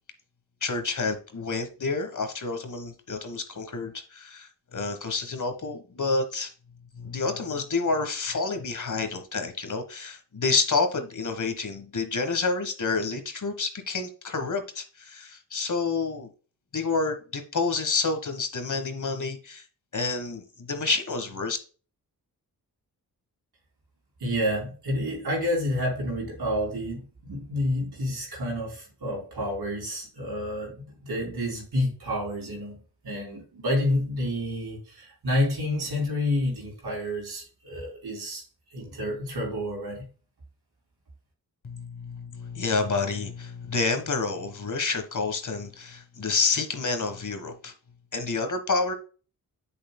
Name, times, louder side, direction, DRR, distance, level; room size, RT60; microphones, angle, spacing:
voice 1, 0.6-6.5 7.0-16.3 16.7-19.6 19.9-21.6 41.6-47.7 48.1-48.9, left 4 dB, 50° left, 1.3 m, -29 dB
voice 2, 24.2-38.4 38.7-40.0, left 1 dB, 75° right, 3.8 m, -29 dB
7.9 x 6.8 x 2.2 m
cardioid pair, 45°, 39 cm